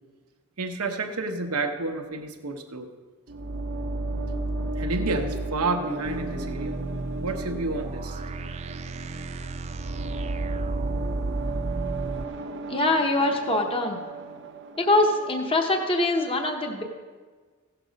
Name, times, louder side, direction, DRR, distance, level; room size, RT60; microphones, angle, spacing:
voice 1, 0.6-2.9 4.7-6.7 7.2-8.2, right 3 dB, 75° right, 4 dB, 1.1 m, -30 dB
sound 1, 3.3-15.9, right 2 dB, 55° right, 0.8 m, -33 dB
sound 2, 6.0-12.2, right 3 dB, 30° right, 0.3 m, -35 dB
voice 2, 12.7-14.0 14.8-16.8, left 2 dB, 25° left, 3 dB, 0.9 m, -23 dB
16.0 x 6.9 x 5.2 m, 1.5 s
head